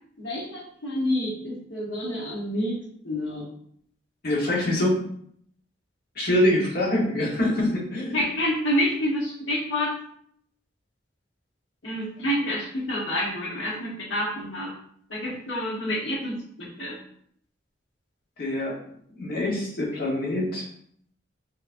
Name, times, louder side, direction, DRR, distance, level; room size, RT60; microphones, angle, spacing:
voice 1, 0.2-2.8 3.0-3.5 8.1-9.9 11.8-14.7 15.1-17.0, equal, 85° left, -2 dB, 1.1 m, -28 dB
voice 2, 4.2-5.0 6.1-8.2 18.4-18.8 19.2-20.6, left 1 dB, 55° left, -4 dB, 1.4 m, -24 dB
4.5 x 3.0 x 2.6 m, 0.65 s
head